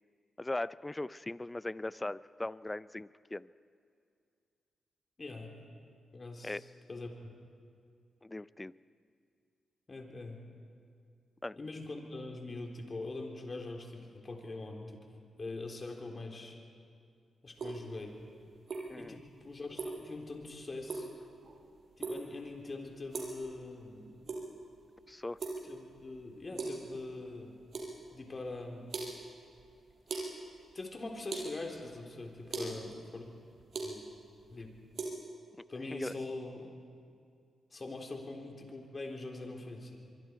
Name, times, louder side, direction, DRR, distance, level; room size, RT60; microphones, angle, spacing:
voice 1, 0.4-3.5 6.4-6.6 8.2-8.8 11.4-11.6 18.9-19.2 25.1-25.4 32.6-32.9 35.9-36.1, left 2 dB, 20° left, 18 dB, 0.5 m, -39 dB
voice 2, 5.2-5.5 6.1-7.3 9.9-10.4 11.6-14.9 15.4-16.6 17.4-18.2 19.0-21.1 22.0-24.1 25.6-27.6 28.1-28.8 30.7-33.2 33.8-34.0 34.5-34.7 35.7-36.7 37.7-40.0, left 2 dB, 40° left, 1 dB, 3.9 m, -43 dB
sound 1, 17.5-35.1, right 3 dB, 60° right, 5.5 m, -43 dB
24.0 x 24.0 x 4.7 m, 2.3 s
supercardioid pair, 45°, 0 cm